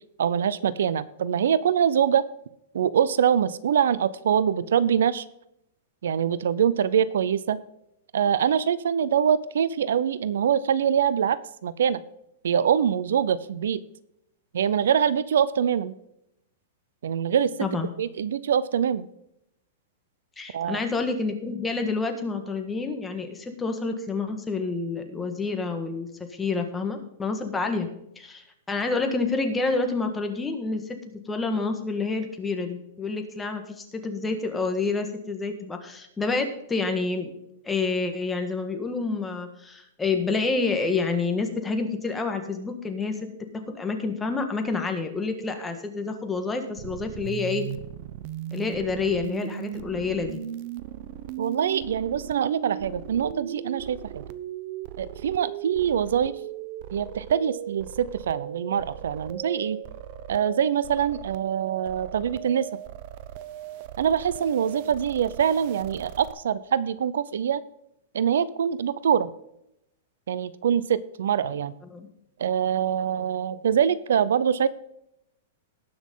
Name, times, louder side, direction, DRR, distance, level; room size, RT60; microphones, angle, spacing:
voice 1, 0.2-2.2 2.7-5.2 6.0-7.6 8.1-11.4 11.6-12.0 12.4-13.8 14.5-15.9 17.0-17.5 18.0-19.1 20.5-20.8 51.4-54.2 55.0-56.3 56.9-59.8 60.3-62.7 64.0-67.6 68.1-69.3 70.3-71.7 72.4-74.7, right 8 dB, 85° right, 17 dB, 0.7 m, -24 dB
voice 2, 20.4-26.1 26.4-27.9 28.1-31.0 31.3-37.3 37.6-43.3 43.7-47.6 48.5-50.4 71.9-72.1, left 4 dB, 10° left, 5 dB, 1.6 m, -28 dB
sound 1, 46.8-66.3, right 12 dB, 45° right, 0.8 m, -38 dB
18.5 x 6.3 x 3.8 m, 0.80 s
supercardioid pair, 155°, 0 cm